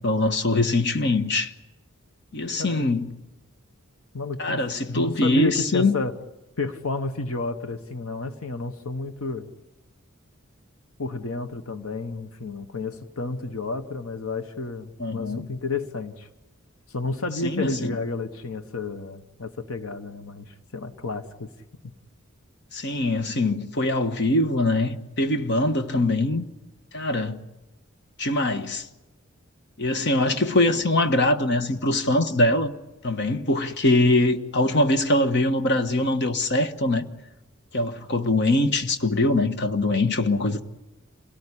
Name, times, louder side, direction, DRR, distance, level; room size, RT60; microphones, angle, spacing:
voice 1, 0.0-1.5 2.3-3.1 4.4-5.9 15.0-15.5 17.4-17.9 22.7-26.4 26.9-27.4 28.2-28.9 29.8-32.7 33.0-37.1 37.7-40.6, left 2 dB, 55° left, 1.3 m, -23 dB
voice 2, 4.1-4.6 4.9-6.1 6.6-9.5 11.0-16.3 16.9-21.5, left 3 dB, 75° left, 1.2 m, -31 dB
27.5 x 18.0 x 9.9 m
head